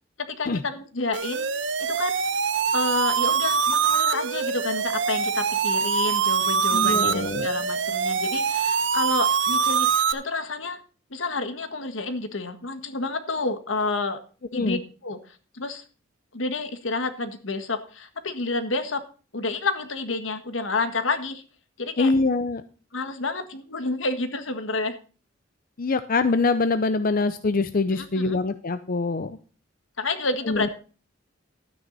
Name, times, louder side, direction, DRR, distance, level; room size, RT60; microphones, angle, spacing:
voice 1, 0.3-1.5 1.9-2.3 2.7-10.8 11.1-14.2 14.5-15.8 16.3-19.0 19.3-21.4 21.8-22.1 22.9-25.0 27.9-28.4 30.0-30.7, left 3 dB, 75° left, 9 dB, 1.6 m, -29 dB
sound 1, 1.1-10.1, right 6 dB, 65° right, 0.9 m, -24 dB
voice 2, 6.7-7.5 14.5-14.8 22.0-22.6 25.8-29.4 30.5-30.7, left 3 dB, 45° left, 11 dB, 0.6 m, -24 dB
12.5 x 9.5 x 4.0 m, 0.38 s
head